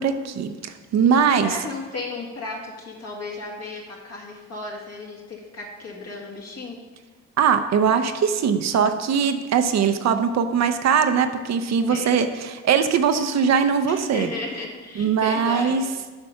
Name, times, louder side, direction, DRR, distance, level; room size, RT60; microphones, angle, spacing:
voice 1, 0.0-1.6 7.4-14.3 15.0-15.8, right 6 dB, 60° right, 8 dB, 0.7 m, -21 dB
voice 2, 1.4-6.8 11.8-12.1 13.9-15.8, left 3 dB, 60° left, -1 dB, 2.1 m, -34 dB
8.0 x 5.2 x 5.7 m, 1.3 s
cardioid pair, 90°, 30 cm